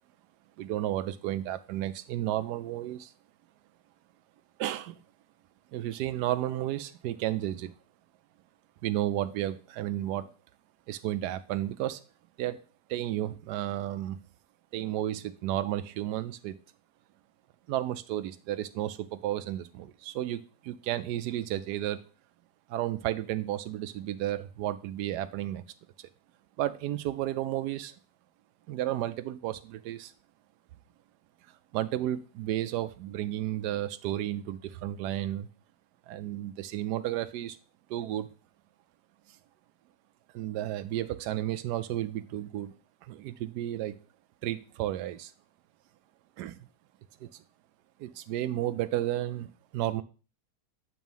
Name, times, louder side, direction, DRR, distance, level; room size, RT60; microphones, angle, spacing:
voice 1, 0.6-3.1 4.6-5.0 5.7-7.7 8.8-10.3 10.9-12.0 12.4-12.6 12.9-14.2 14.7-16.6 17.7-22.0 22.7-25.6 26.6-27.9 28.7-30.1 31.7-35.5 36.1-37.6 37.9-38.3 40.3-42.7 43.0-44.0 44.4-45.3 46.4-46.7 47.2-47.3 48.0-50.0, right 13 dB, 80° right, 12 dB, 1.1 m, -32 dB
8.4 x 3.0 x 5.3 m, 0.36 s
omnidirectional pair, 1.8 m